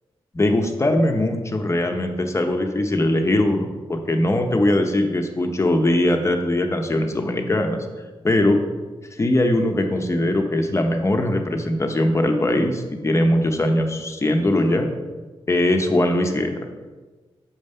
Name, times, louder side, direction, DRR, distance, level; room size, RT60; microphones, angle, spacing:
voice 1, 0.3-7.8 8.2-8.6 9.2-14.9 15.5-16.6, left 1 dB, 30° left, 4 dB, 0.9 m, -21 dB
7.3 x 5.3 x 5.5 m, 1.3 s
cardioid pair, 80°, 10 cm